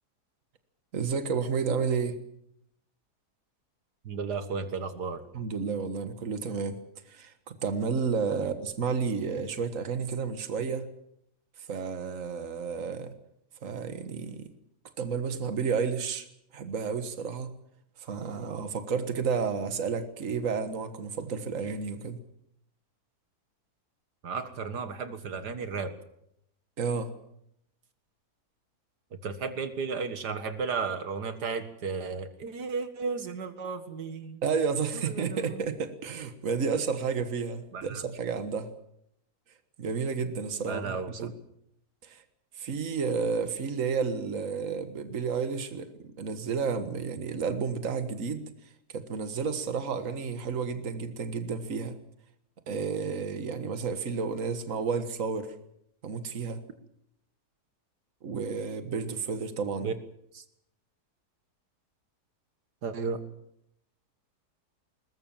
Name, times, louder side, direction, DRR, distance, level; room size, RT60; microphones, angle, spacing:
voice 1, 0.9-2.2 5.3-6.8 7.1-10.9 11.7-13.1 13.6-14.5 15.0-16.3 16.5-17.5 18.0-22.2 26.8-27.1 34.4-38.7 39.8-40.9 41.2-41.3 42.0-42.2 42.6-48.5 48.9-52.0 52.7-55.6 56.0-56.6 58.2-59.9, right 5 dB, 55° right, 9 dB, 1.9 m, -31 dB
voice 2, 4.1-5.2 8.4-8.5 24.2-25.9 29.2-34.4 35.1-35.6 37.7-38.0 40.7-41.1 59.8-59.9 60.3-60.4 62.8-63.2, right 5 dB, 85° right, 9 dB, 2.2 m, -34 dB
21.5 x 20.0 x 7.4 m, 0.75 s
omnidirectional pair, 1.7 m